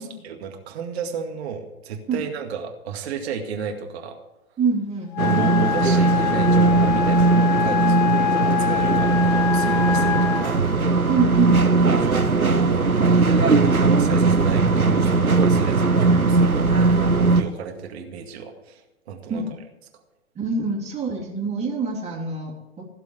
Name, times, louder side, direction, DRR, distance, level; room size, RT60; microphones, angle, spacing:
voice 1, 0.0-4.2 5.2-8.0 8.4-10.6 11.8-18.8 19.1-19.4, right 6 dB, 50° right, 4 dB, 2.2 m, -32 dB
voice 2, 4.6-5.1 7.8-8.0 11.1-11.6 19.3-19.5 20.3-22.8, right 4 dB, 15° right, -2 dB, 3.3 m, -25 dB
Wind instrument woodwind instrument, 5.1-10.5, left 10 dB, 35° left, 2.3 m, -24 dB
sound 1, 5.2-17.4, right 3 dB, 90° right, 1.0 m, -19 dB
17.0 x 7.2 x 8.0 m, 0.96 s
figure-of-eight pair, 110°, 42 cm